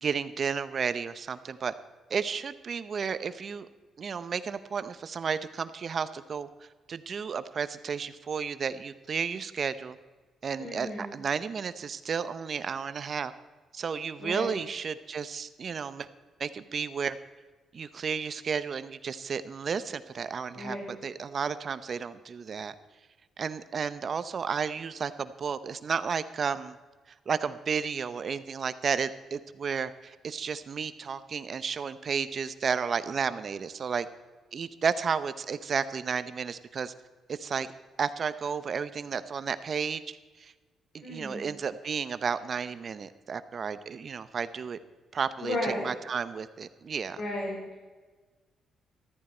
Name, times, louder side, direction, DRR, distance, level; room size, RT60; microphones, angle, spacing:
voice 1, 0.0-1.7 2.1-3.7 4.0-6.5 6.9-10.0 10.4-13.3 13.7-16.1 16.4-17.2 17.7-22.7 23.4-26.8 27.3-34.1 34.5-36.9 37.3-37.7 38.0-40.5 40.9-44.8 45.1-47.2, right 6 dB, 50° right, 13 dB, 0.7 m, -32 dB
voice 2, 10.6-11.1 14.2-14.5 20.5-20.8 41.0-41.4 45.4-45.9 47.2-47.6, left 1 dB, 70° left, -3 dB, 4.6 m, -33 dB
13.5 x 13.5 x 4.4 m, 1.3 s
cardioid pair, 90°, 0 cm